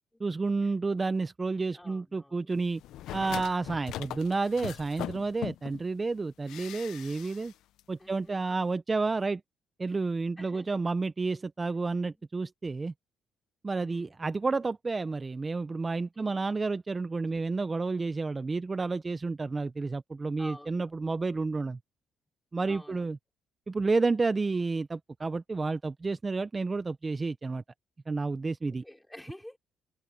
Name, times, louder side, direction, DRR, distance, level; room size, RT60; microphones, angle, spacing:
voice 1, 0.2-2.8 3.1-7.5 7.9-9.4 9.8-12.9 13.6-21.8 22.5-23.2 23.7-27.6 28.1-28.8, right 3 dB, 25° right, 0.6 m, -30 dB
voice 2, 1.7-2.5 8.0-8.6 9.9-10.0 10.4-10.8 12.1-12.2 13.8-14.2 16.1-16.5 17.2-17.5 20.4-21.1 22.7-23.1 28.7-29.6, left 1 dB, 5° left, 5.0 m, -50 dB
sound 1, 2.8-5.8 6.5-7.5 7.8-7.9, left 14 dB, 85° left, 0.5 m, -40 dB
cardioid pair, 90°, 0 cm